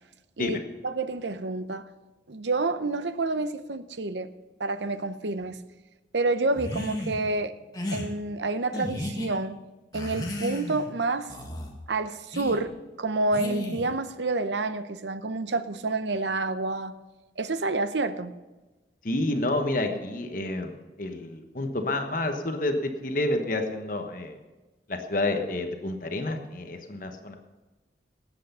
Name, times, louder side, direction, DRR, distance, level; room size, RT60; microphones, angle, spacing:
voice 1, 0.8-1.9 2.3-4.3 4.6-5.6 6.1-7.5 7.9-9.6 9.9-11.3 11.9-16.9 17.4-18.3, right 3 dB, 80° right, 0.8 m, -28 dB
sound 1, 6.6-7.2 7.7-8.1 8.7-9.3 9.9-10.9 11.3-11.7 12.3-12.6 13.3-13.9, left 1 dB, 20° left, 1.8 m, -34 dB
voice 2, 19.0-24.3 24.9-27.4, left 2 dB, 50° left, 1.2 m, -29 dB
18.5 x 8.2 x 5.6 m
head